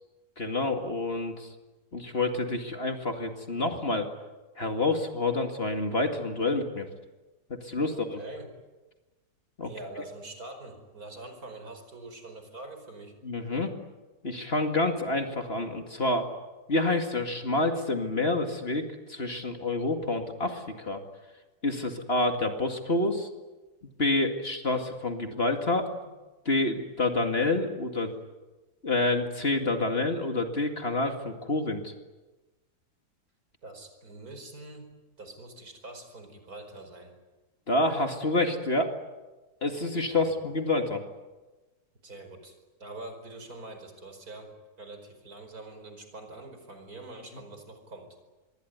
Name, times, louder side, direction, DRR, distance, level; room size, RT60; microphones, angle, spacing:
voice 1, 0.4-1.5 1.9-4.1 4.6-6.9 7.5-8.2 9.6-9.7 13.2-13.8 14.2-16.3 16.7-21.0 21.6-23.3 24.0-26.0 26.5-28.1 28.8-31.9 37.7-38.9 39.6-41.0, left 2 dB, 40° left, 5 dB, 2.4 m, -28 dB
voice 2, 7.8-8.5 9.6-13.1 33.6-34.9 35.2-37.2 40.1-40.3 42.0-48.2, right 2 dB, 65° right, 7 dB, 5.4 m, -44 dB
26.0 x 22.5 x 9.6 m, 1.2 s
omnidirectional pair, 1.7 m